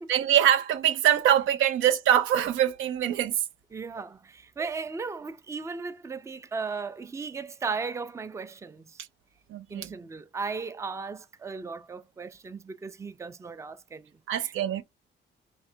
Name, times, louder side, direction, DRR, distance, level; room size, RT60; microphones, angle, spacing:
voice 1, 0.1-3.3 4.6-4.7 9.5-9.9 14.3-14.8, right 10 dB, 85° right, 0.5 m, -23 dB
voice 2, 3.7-9.0 9.7-14.1 14.4-14.5, right 4 dB, 15° right, 0.4 m, -36 dB
3.3 x 2.4 x 4.3 m
cardioid pair, 90°, 20 cm